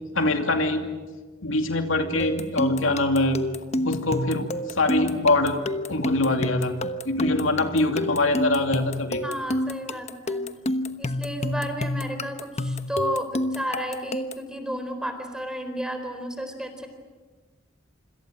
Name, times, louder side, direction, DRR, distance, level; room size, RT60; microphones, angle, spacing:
voice 1, 0.1-0.9 1.4-3.4 3.8-5.6 5.9-6.7 7.0-9.2, left 2 dB, 80° left, 5 dB, 2.6 m, -23 dB
sound 1, 2.2-14.5, left 1 dB, 35° left, 1.1 m, -29 dB
voice 2, 9.2-10.5 11.0-16.9, equal, 5° right, 6 dB, 4.0 m, -32 dB
27.0 x 26.0 x 7.6 m, 1.3 s
head